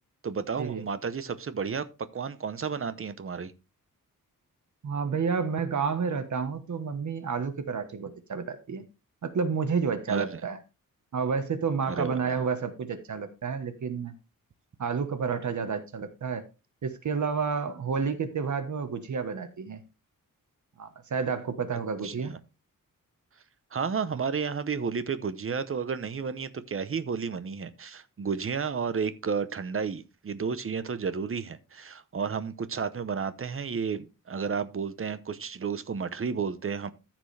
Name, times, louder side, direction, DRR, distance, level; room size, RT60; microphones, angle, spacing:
voice 1, 0.2-1.8 2.1-3.5 10.1-10.4 11.9-12.2 21.7-22.4 23.7-36.9, right 6 dB, 40° right, 0.8 m, -32 dB
voice 2, 4.8-8.8 9.2-10.6 11.1-14.1 14.8-16.4 16.8-19.8 20.8-22.3 24.1-24.2, right 5 dB, 60° right, 1.2 m, -30 dB
14.0 x 6.0 x 3.3 m
wide cardioid pair, 165°, 34 cm